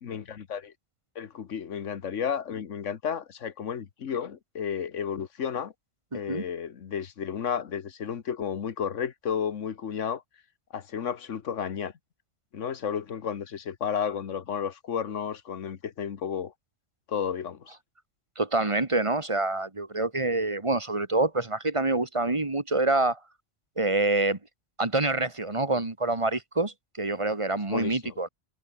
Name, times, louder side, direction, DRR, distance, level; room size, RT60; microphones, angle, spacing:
voice 1, 0.0-0.7 1.1-5.7 6.1-10.2 10.7-11.9 12.5-16.5 17.1-17.7 27.7-28.1, left 7 dB, 85° left, 1.5 m, -32 dB
voice 2, 6.1-6.5 18.4-23.2 23.8-24.4 24.8-28.3, right 2 dB, 25° right, 1.8 m, -26 dB
omnidirectional pair, 1.2 m